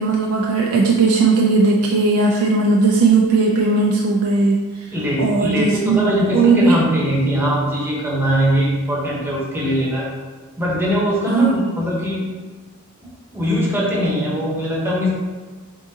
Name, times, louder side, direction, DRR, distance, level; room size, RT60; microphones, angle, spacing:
voice 1, 0.0-4.9 5.2-6.8 11.3-11.7, right 3 dB, 75° right, -2 dB, 0.4 m, -17 dB
voice 2, 4.9-10.1 10.6-12.2 13.3-15.1, equal, 10° right, -4 dB, 0.8 m, -21 dB
3.7 x 3.6 x 2.7 m, 1.4 s
head